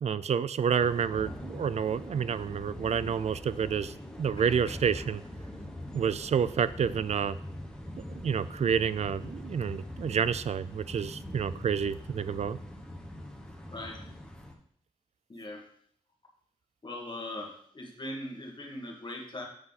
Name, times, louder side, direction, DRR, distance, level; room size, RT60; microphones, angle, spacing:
voice 1, 0.0-5.2 5.9-7.4 8.0-12.6, right 7 dB, 65° right, 16 dB, 0.4 m, -29 dB
sound 1, 0.8-14.5, left 1 dB, 5° left, 1.3 m, -42 dB
voice 2, 13.7-14.0 15.3-15.6 16.8-19.5, left 1 dB, 40° left, 0 dB, 1.8 m, -40 dB
7.9 x 5.7 x 4.1 m, 0.65 s
wide cardioid pair, 90°, 12 cm